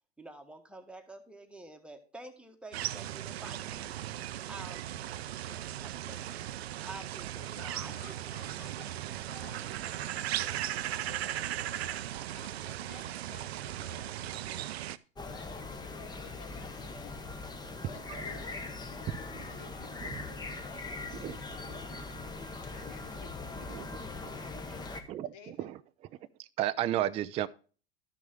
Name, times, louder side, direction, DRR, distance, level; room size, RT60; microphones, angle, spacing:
voice 1, 0.2-3.9 4.5-6.4 6.8-8.2, right 2 dB, 5° right, 1.4 m, -49 dB
sound 1, 2.7-15.0, right 12 dB, 70° right, 0.5 m, -37 dB
voice 2, 7.4-12.0 12.3-14.7 15.2-17.4 17.8-19.2 19.5-22.2 22.6-24.1 25.2-25.7, left 6 dB, 50° left, 2.2 m, -54 dB
sound 2, 15.2-25.0, left 3 dB, 15° left, 1.0 m, -41 dB
voice 3, 25.1-25.8 26.6-27.5, right 13 dB, 20° right, 0.3 m, -32 dB
12.5 x 6.1 x 3.7 m
hypercardioid pair, 95°, 32 cm